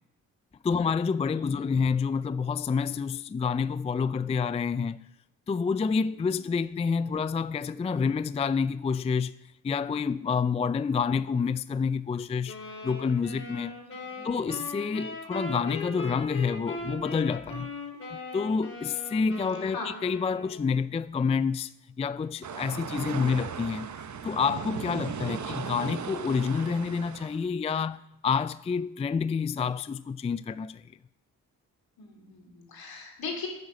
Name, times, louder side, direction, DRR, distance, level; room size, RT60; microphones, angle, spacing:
voice 1, 0.6-5.1 5.5-9.3 9.6-12.6 12.8-13.7 14.2-17.7 18.1-23.9 24.2-30.8, left 5 dB, 20° left, 0.3 m, -28 dB
voice 2, 1.3-1.6 11.1-11.3 13.8-14.5 19.6-19.9 23.3-23.5 25.4-25.7 32.0-33.5, left 4 dB, 65° left, 3.4 m, -41 dB
sound 1, 12.5-20.8, left 2 dB, 35° left, 4.0 m, -39 dB
sound 2, 22.4-27.4, right 7 dB, 50° right, 1.1 m, -37 dB
9.5 x 9.4 x 6.4 m
supercardioid pair, 45°, 38 cm